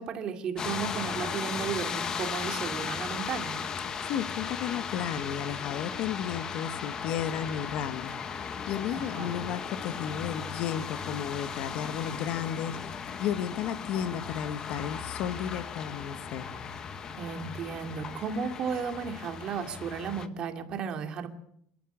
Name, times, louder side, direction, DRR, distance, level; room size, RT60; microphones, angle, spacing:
voice 1, 0.0-3.6 8.9-9.3 17.2-21.3, right 6 dB, 35° right, 6 dB, 2.5 m, -34 dB
sound 1, 0.6-20.3, left 6 dB, 25° left, 1.3 m, -36 dB
voice 2, 4.0-16.5, left 9 dB, 55° left, 11 dB, 1.6 m, -33 dB
29.0 x 13.0 x 8.5 m, 0.71 s
cardioid pair, 165°, 3 cm